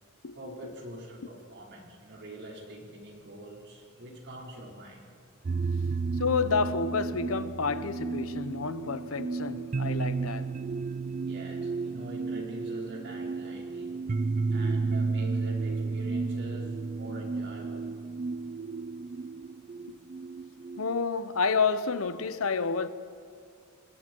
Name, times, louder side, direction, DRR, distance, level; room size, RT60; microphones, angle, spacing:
voice 1, 0.3-5.1 11.2-14.0 14.5-17.9, right 1 dB, 60° right, 4.7 m, -44 dB
sound 1, 5.4-21.0, right 4 dB, 35° right, 0.4 m, -32 dB
voice 2, 6.1-10.5 19.9-20.0 20.8-22.9, left 5 dB, 75° left, 0.9 m, -29 dB
28.5 x 20.5 x 4.6 m
head